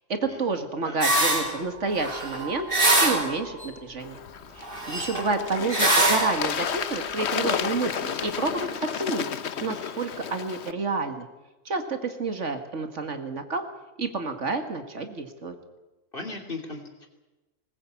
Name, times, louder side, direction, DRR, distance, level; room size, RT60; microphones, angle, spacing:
voice 1, 0.1-2.7 3.0-4.2 4.5-8.7 9.0-9.3 9.6-11.3 11.7-13.6 14.0-15.5, right 3 dB, 65° right, 7 dB, 2.2 m, -29 dB
voice 2, 0.8-1.2 16.1-17.1, left 3 dB, 40° left, 4 dB, 3.1 m, -38 dB
sound 1, 1.0-1.6 1.9-3.7 4.6-5.4 5.7-6.5, right 2 dB, 40° right, 4.6 m, -23 dB
Bird / Water, 4.0-10.7, left 7 dB, 60° left, 1.1 m, -32 dB
20.0 x 20.0 x 8.6 m, 1.1 s
omnidirectional pair, 1.4 m